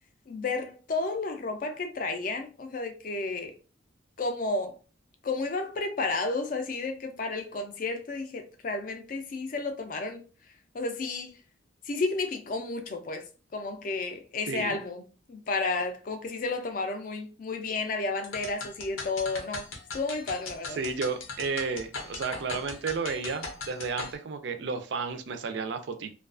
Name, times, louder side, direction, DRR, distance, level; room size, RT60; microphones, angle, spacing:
voice 1, 0.3-3.6 4.2-4.8 5.2-10.2 10.7-11.3 11.9-13.2 13.5-15.0 15.3-19.7 19.9-20.8, left 3 dB, 40° left, 0.4 m, -32 dB
voice 2, 14.5-14.8 20.7-26.1, right 4 dB, 60° right, 0.4 m, -32 dB
sound 1, 18.2-24.2, left 4 dB, 90° left, 0.6 m, -39 dB
2.4 x 2.3 x 2.3 m
head